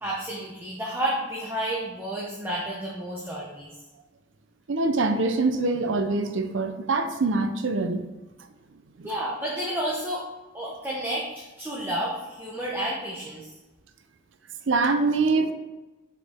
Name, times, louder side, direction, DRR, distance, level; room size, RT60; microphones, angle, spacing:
voice 1, 0.0-3.7 9.0-10.3 10.5-13.5, right 1 dB, 10° right, -4 dB, 0.8 m, -31 dB
voice 2, 4.7-8.1 9.0-9.1 14.7-15.5, right 3 dB, 75° right, 8 dB, 0.6 m, -24 dB
7.3 x 4.7 x 3.6 m, 1.1 s
head